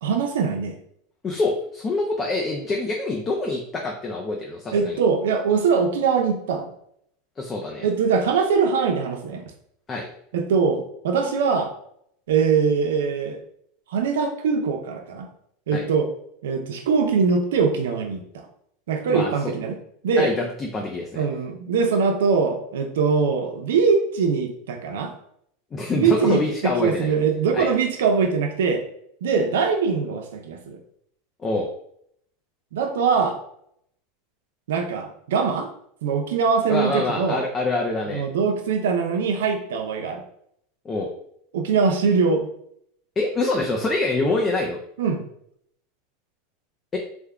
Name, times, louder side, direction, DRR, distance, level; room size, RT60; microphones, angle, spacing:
voice 1, 0.0-0.7 4.7-6.7 7.8-9.4 10.3-11.7 12.3-13.4 13.9-15.3 15.7-16.1 16.4-18.5 18.9-19.7 20.0-20.3 21.1-25.1 26.0-28.8 29.2-30.8 32.7-33.4 34.7-35.7 36.0-37.4 38.1-40.2 41.5-42.5 45.0-45.2, right 5 dB, 85° right, 4 dB, 0.6 m, -22 dB
voice 2, 1.2-5.0 7.4-7.9 9.9-10.1 15.7-15.9 19.1-19.6 20.2-21.2 25.7-27.1 27.5-27.7 31.4-31.7 36.7-38.2 40.8-41.1 43.2-44.8 46.9-47.0, left 2 dB, 20° left, 0 dB, 0.5 m, -25 dB
3.4 x 2.2 x 3.5 m, 0.68 s
supercardioid pair, 135°, 0 cm